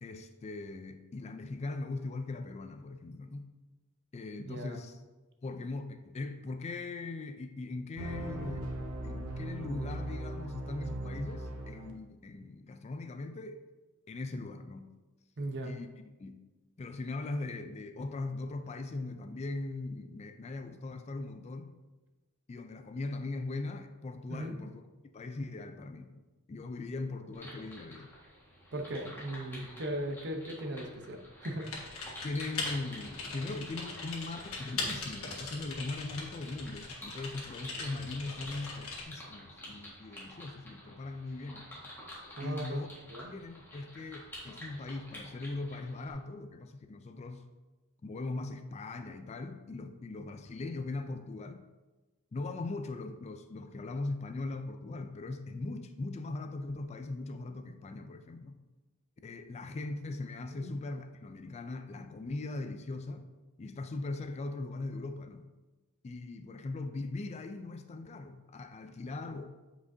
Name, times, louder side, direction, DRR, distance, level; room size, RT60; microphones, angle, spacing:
voice 1, 0.0-3.5 4.1-5.0 5.4-8.7 9.0-13.6 14.1-14.9 15.6-15.9 16.2-16.4 16.8-21.7 22.5-24.8 25.1-26.1 26.5-28.1 32.2-41.7 42.4-42.9 43.3-47.4 48.0-51.7 52.3-58.6 59.2-63.2 63.6-65.5 66.0-69.5, left 2 dB, 30° left, 8 dB, 0.3 m, -40 dB
voice 2, 4.4-4.8 15.4-15.7 24.3-24.6 28.7-31.7 42.4-42.8 43.1-43.3 60.6-60.7, right 1 dB, 50° right, 4 dB, 0.8 m, -38 dB
sound 1, 8.0-11.9, right 1 dB, 90° right, 0.9 m, -38 dB
sound 2, 27.3-46.1, equal, 10° left, 1.5 m, -50 dB
Typing, 31.6-39.0, left 3 dB, 70° left, 1.5 m, -40 dB
8.3 x 5.1 x 2.6 m, 1.2 s
head